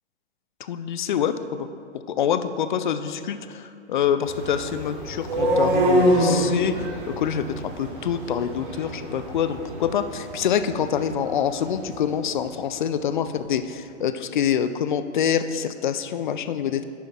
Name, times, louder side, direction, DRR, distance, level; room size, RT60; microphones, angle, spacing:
voice 1, 0.6-1.7 1.9-6.9 7.2-16.8, left 8 dB, 45° left, 12 dB, 0.5 m, -26 dB
sound 1, 4.2-12.2, right 1 dB, 45° right, 2.1 m, -26 dB
11.5 x 8.5 x 2.5 m, 2.5 s
figure-of-eight pair, 120°, 35 cm